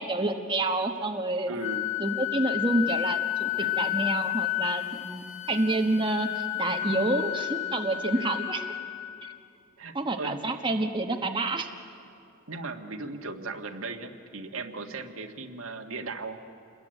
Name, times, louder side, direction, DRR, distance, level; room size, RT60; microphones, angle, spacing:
voice 1, 0.0-1.5 2.0-8.6 9.2-9.3 9.9-11.7, right 2 dB, 25° right, 4 dB, 1.2 m, -28 dB
voice 2, 1.5-1.9 3.6-3.8 8.1-8.4 9.8-10.4 12.5-16.4, right 3 dB, 75° right, 5 dB, 1.7 m, -37 dB
Wind instrument woodwind instrument, 1.6-9.4, left 15 dB, 65° left, 1.0 m, -31 dB
27.5 x 21.5 x 9.1 m, 2.5 s
head